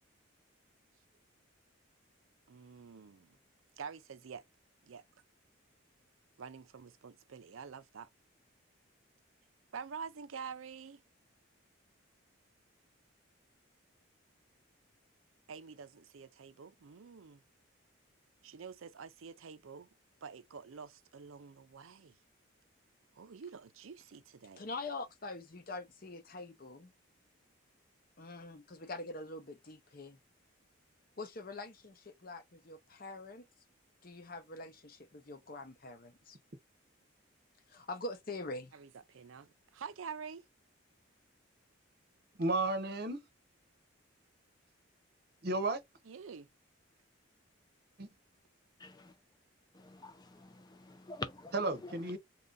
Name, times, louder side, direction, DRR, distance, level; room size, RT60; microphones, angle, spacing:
voice 1, 2.5-3.4 3.8-4.4 4.8-5.0 6.4-8.1 9.7-11.0 15.5-17.4 18.4-19.9 20.2-22.2 23.2-24.6 38.7-40.4 46.0-46.5, right 6 dB, 75° right, 0.5 m, -47 dB
voice 2, 24.6-26.9 28.2-30.2 31.2-33.5 34.0-36.4 37.7-38.7, left 2 dB, 45° left, 0.8 m, -44 dB
voice 3, 42.4-43.2 45.4-45.8 48.0-48.1 51.5-52.2, right 2 dB, 50° right, 0.8 m, -33 dB
voice 4, 48.8-49.2 49.7-52.2, left 3 dB, 20° left, 0.4 m, -47 dB
2.8 x 2.6 x 3.7 m
head